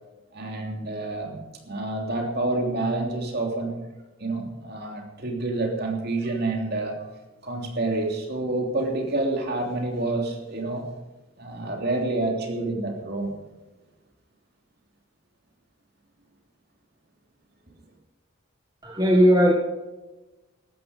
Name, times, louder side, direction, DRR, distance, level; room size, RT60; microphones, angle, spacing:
voice 1, 0.3-1.4 1.6-3.7 4.2-7.0 7.4-10.9 11.4-13.3, right 2 dB, 45° right, 1 dB, 3.1 m, -28 dB
voice 2, 18.8-19.5, equal, 20° right, 0 dB, 1.4 m, -17 dB
14.5 x 13.0 x 5.2 m, 1.1 s
head